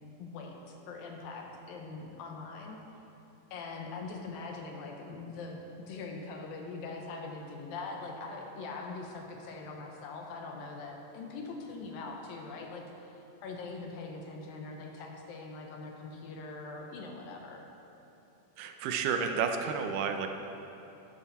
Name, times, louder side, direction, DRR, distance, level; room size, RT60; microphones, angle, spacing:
voice 1, 0.2-2.8 3.5-17.7, left 3 dB, 80° left, 1 dB, 2.8 m, -42 dB
voice 2, 18.6-20.3, right 6 dB, 75° right, 5 dB, 2.1 m, -31 dB
12.5 x 10.5 x 4.2 m, 2.9 s
omnidirectional pair, 4.2 m